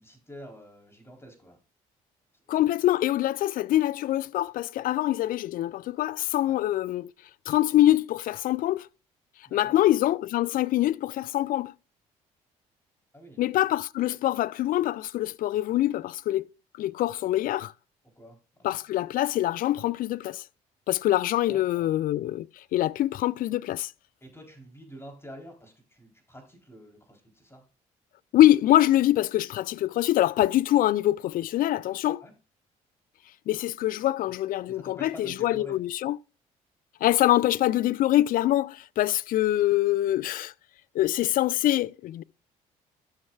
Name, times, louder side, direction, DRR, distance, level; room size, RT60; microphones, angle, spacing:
voice 1, 0.0-1.6 2.3-2.6 6.5-6.6 9.5-9.8 13.1-13.4 18.2-19.1 21.5-21.9 24.2-27.6 32.2-32.3 34.3-34.4 34.7-35.8, equal, 15° left, 3.6 m, -48 dB
voice 2, 2.5-7.1 7.5-8.9 9.5-11.7 13.4-16.5 16.8-17.7 18.6-20.4 20.9-22.5 22.7-23.9 28.3-32.2 33.5-36.2 37.0-40.5 41.0-42.2, left 14 dB, 60° left, 0.4 m, -24 dB
12.5 x 6.4 x 2.3 m
supercardioid pair, 65°, 16 cm